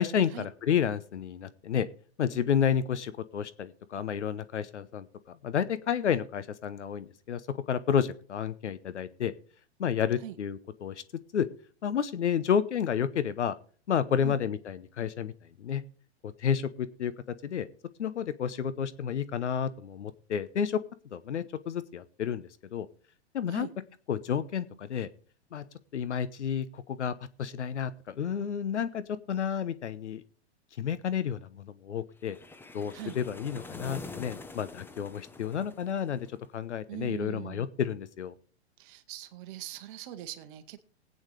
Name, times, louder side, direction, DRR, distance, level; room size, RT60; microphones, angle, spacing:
voice 1, 0.0-1.9 2.2-9.3 9.8-11.0 11.3-11.5 11.8-13.5 13.9-15.3 15.6-15.8 16.2-17.7 18.0-20.8 21.1-22.9 23.3-23.7 24.1-25.1 25.5-25.6 25.9-29.0 29.3-30.2 30.8-32.4 32.7-36.3 36.5-38.3, left 8 dB, 85° left, 0.9 m, -31 dB
sound 1, 32.2-36.5, left 3 dB, 5° left, 0.7 m, -45 dB
voice 2, 32.9-33.2 36.9-37.6 38.8-40.8, right 12 dB, 50° right, 1.4 m, -41 dB
20.0 x 8.9 x 3.3 m
hypercardioid pair, 115°, 34 cm